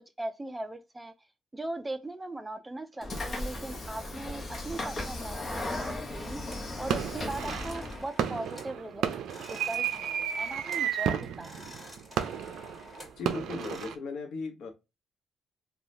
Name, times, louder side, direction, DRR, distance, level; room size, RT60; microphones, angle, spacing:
voice 1, 0.2-1.1 1.5-6.4 6.8-9.0 9.3-11.5 11.8-11.9, right 2 dB, 15° right, 0.4 m, -39 dB
Train / Sliding door, 3.0-8.1, left 2 dB, 35° left, 0.9 m, -36 dB
sound 1, 6.1-6.7 7.1-8.8 9.0-10.9 11.2-13.9, left 1 dB, 15° left, 1.7 m, -49 dB
sound 2, 6.1-6.5 6.9-14.0, right 9 dB, 75° right, 0.4 m, -33 dB
voice 2, 13.2-14.7, left 3 dB, 75° left, 0.8 m, -37 dB
3.2 x 2.3 x 2.5 m
cardioid pair, 90°, 0 cm